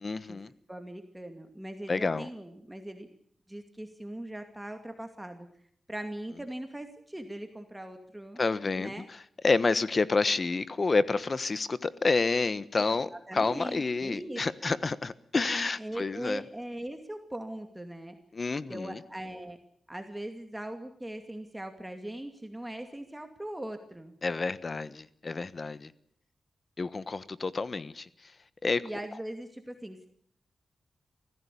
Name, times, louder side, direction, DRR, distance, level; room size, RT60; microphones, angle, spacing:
voice 1, 0.0-0.5 1.9-2.3 8.4-8.9 9.4-16.4 18.3-19.0 24.2-25.9 26.8-28.1 28.6-28.8, left 3 dB, 45° left, 1.2 m, -29 dB
voice 2, 0.7-3.1 3.5-5.5 5.9-8.4 8.7-9.1 13.1-14.8 15.8-18.2 18.7-19.6 19.9-24.1 28.8-30.1, right 1 dB, 10° right, 2.4 m, -40 dB
24.5 x 16.0 x 8.5 m
cardioid pair, 75°, 0 cm